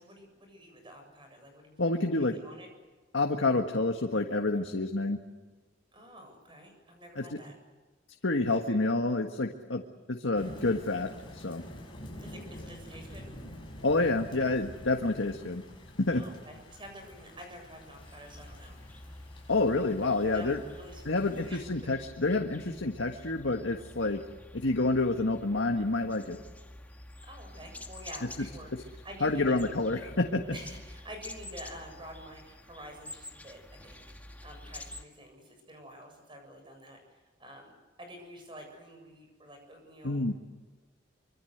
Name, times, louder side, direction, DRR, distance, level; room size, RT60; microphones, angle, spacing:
voice 1, 0.0-2.7 5.9-7.5 8.5-8.8 12.2-13.3 16.1-18.8 20.3-21.2 21.4-22.1 27.2-29.7 30.5-37.7 38.0-40.2, equal, 25° right, 4 dB, 7.8 m, -49 dB
voice 2, 1.8-2.3 3.1-5.2 7.2-7.3 8.2-9.8 10.1-11.6 13.8-15.6 16.0-16.2 19.5-20.6 21.0-24.2 24.5-26.4 29.2-30.4 40.0-40.3, left 2 dB, 85° left, 3 dB, 1.7 m, -28 dB
Thunder / Rain, 10.3-21.5, left 1 dB, 25° left, 7.2 m, -48 dB
sound 1, 18.0-35.0, left 1 dB, 10° left, 2.1 m, -48 dB
25.5 x 25.0 x 8.1 m, 1.3 s
head